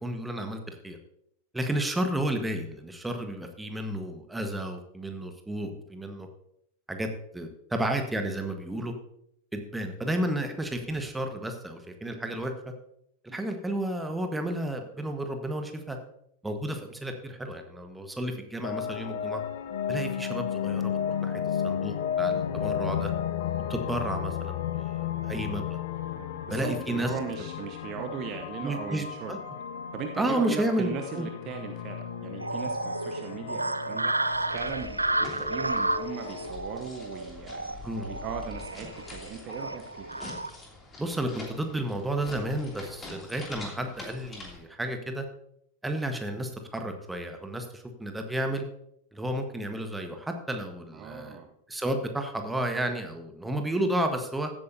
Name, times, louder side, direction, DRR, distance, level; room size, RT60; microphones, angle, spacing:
voice 1, 0.0-1.0 1.5-6.3 6.9-7.1 7.3-8.9 9.5-12.7 13.2-16.0 16.4-19.4 19.9-23.1 23.7-25.8 26.5-27.1 28.6-29.4 30.2-31.3 37.8-38.1 41.0-45.3 45.8-48.7 49.1-51.4 51.7-54.5, right 1 dB, 5° right, 5 dB, 1.4 m, -32 dB
sound 1, 18.6-36.5, left 9 dB, 55° left, 0.8 m, -34 dB
voice 2, 26.2-29.4 29.9-40.2 50.9-51.5, right 7 dB, 35° right, 4 dB, 0.9 m, -38 dB
sound 2, 32.4-40.5, right 2 dB, 85° right, 0.4 m, -32 dB
sound 3, 34.3-44.6, left 2 dB, 20° left, 2.8 m, -45 dB
15.5 x 8.7 x 2.8 m, 0.74 s
figure-of-eight pair, 90°, 0 cm